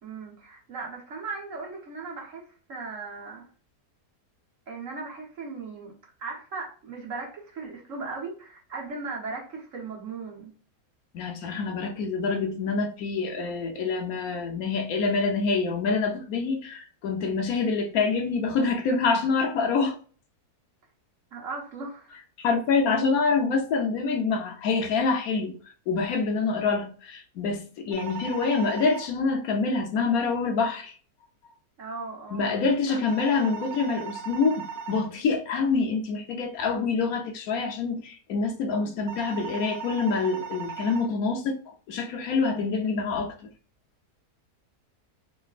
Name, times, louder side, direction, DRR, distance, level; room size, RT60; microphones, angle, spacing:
voice 1, 0.0-3.5 4.7-5.9 6.2-10.5 21.3-22.1 31.8-32.5 32.9-33.0, right 4 dB, 55° right, 1.5 m, -37 dB
voice 2, 11.1-19.9 22.4-25.6 25.9-31.0 32.3-43.5, left 4 dB, 70° left, 1.2 m, -26 dB
sound 1, 27.9-29.1 33.1-35.1 39.1-41.1, right 6 dB, 75° right, 1.3 m, -37 dB
4.9 x 3.0 x 2.4 m
omnidirectional pair, 1.7 m